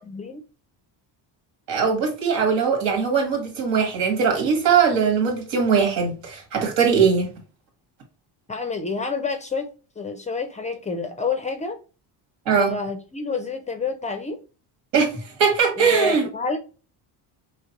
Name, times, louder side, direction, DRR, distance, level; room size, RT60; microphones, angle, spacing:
voice 1, 1.7-7.3 12.5-12.7 14.9-16.3, right 6 dB, 90° right, 1.9 m, -20 dB
voice 2, 8.5-9.7 10.0-11.8 12.5-14.4 15.7-16.6, left 4 dB, 20° left, 0.3 m, -28 dB
5.0 x 3.1 x 2.9 m
cardioid pair, 175°, 42 cm